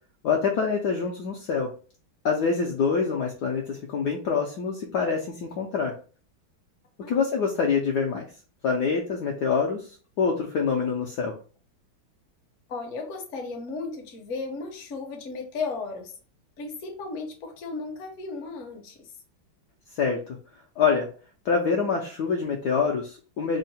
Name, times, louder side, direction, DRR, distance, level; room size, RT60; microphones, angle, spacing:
voice 1, 0.2-1.7 2.2-5.9 7.1-8.3 8.6-9.9 10.2-11.3 20.0-20.2 20.8-21.1 21.4-23.6, left 5 dB, 70° left, 1 dB, 1.0 m, -25 dB
voice 2, 12.7-16.1 16.6-19.1, left 4 dB, 55° left, 2 dB, 0.9 m, -35 dB
3.6 x 2.1 x 4.0 m, 0.39 s
omnidirectional pair, 2.2 m